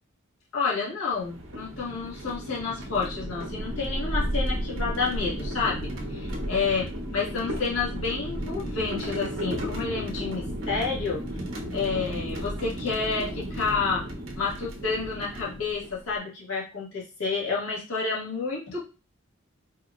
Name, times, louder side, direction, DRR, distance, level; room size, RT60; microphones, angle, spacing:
voice 1, 0.5-6.9 7.1-11.2 11.7-14.1 14.3-18.9, left 4 dB, 75° left, -6 dB, 1.7 m, -29 dB
sound 1, 1.1-16.1, equal, 60° right, 1.0 m, -33 dB
4.6 x 2.9 x 2.4 m, 0.32 s
head